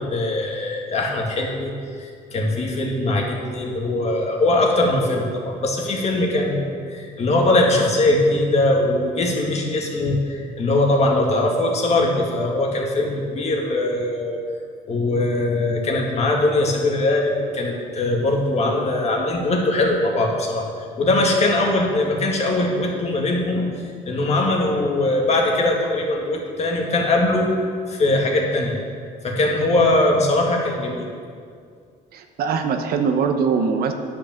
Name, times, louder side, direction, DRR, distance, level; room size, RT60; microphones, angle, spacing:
voice 1, 0.0-1.7 2.0-14.4 14.9-20.7 21.0-23.7 24.1-28.8 29.2-31.1, left 2 dB, 40° left, 0 dB, 2.0 m, -21 dB
voice 2, 32.1-33.9, right 5 dB, 65° right, 6 dB, 1.0 m, -22 dB
9.8 x 6.2 x 7.1 m, 2.2 s
cardioid pair, 110°, 17 cm